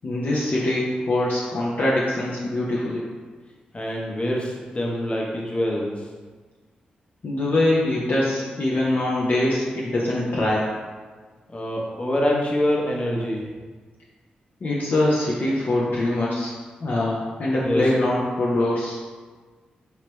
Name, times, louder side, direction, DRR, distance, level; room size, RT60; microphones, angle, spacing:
voice 1, 0.0-3.1 7.2-10.7 14.6-16.5 16.8-19.0, left 1 dB, 60° left, -5 dB, 0.6 m, -23 dB
voice 2, 3.7-5.9 11.5-13.4 17.6-17.8, left 1 dB, 35° left, -2 dB, 0.9 m, -25 dB
3.2 x 3.1 x 3.1 m, 1.4 s
supercardioid pair, 45°, 3 cm